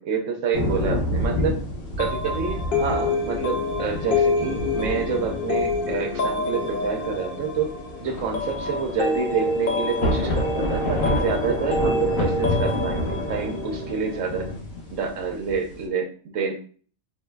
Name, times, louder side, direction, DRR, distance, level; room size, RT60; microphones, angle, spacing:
voice 1, 0.0-1.6 2.0-7.7 8.0-14.5 14.9-16.5, right 5 dB, 75° right, 4 dB, 1.0 m, -28 dB
sound 1, 0.5-15.8, left 1 dB, 80° left, 1.3 m, -30 dB
sound 2, 2.0-14.6, left 2 dB, 60° left, 0.6 m, -27 dB
4.6 x 2.7 x 2.2 m, 0.42 s
omnidirectional pair, 1.4 m